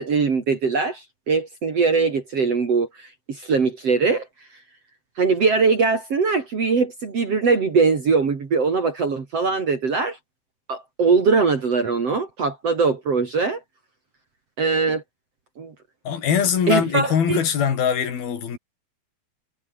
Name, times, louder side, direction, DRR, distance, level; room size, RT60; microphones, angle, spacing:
voice 1, 0.0-4.3 5.2-10.2 10.7-13.6 14.6-15.0 15.6-15.7 16.7-17.4, right 4 dB, 45° right, 3.8 m, -21 dB
voice 2, 16.1-18.6, left 7 dB, 80° left, 5.2 m, -22 dB
omnidirectional pair, 4.2 m